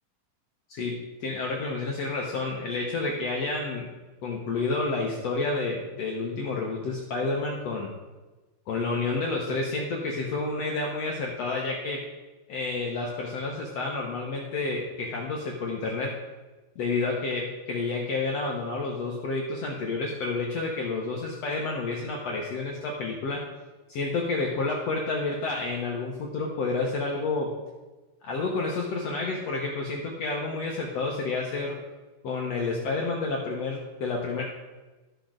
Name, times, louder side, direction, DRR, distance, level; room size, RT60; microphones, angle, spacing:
voice 1, 0.7-3.9 4.2-7.9 8.7-12.0 12.5-16.2 16.8-23.4 23.9-27.5 28.2-31.8 32.2-34.4, left 3 dB, 65° left, -1 dB, 1.8 m, -30 dB
13.0 x 6.8 x 3.8 m, 1.2 s
omnidirectional pair, 3.9 m